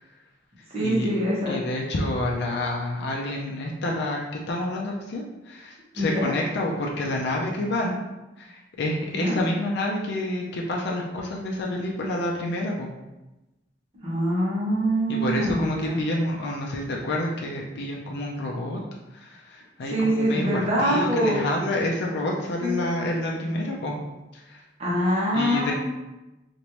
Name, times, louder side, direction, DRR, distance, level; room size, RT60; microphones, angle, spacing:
voice 1, 0.7-1.6 5.9-6.3 9.1-9.4 14.0-16.0 19.9-21.4 22.6-22.9 24.8-25.7, equal, 35° right, -6 dB, 1.1 m, -24 dB
voice 2, 1.5-8.0 8.4-12.9 15.1-18.8 19.1-24.0 24.3-24.6 25.3-25.7, left 1 dB, 65° left, -1 dB, 0.4 m, -28 dB
3.1 x 2.6 x 2.9 m, 1.0 s
head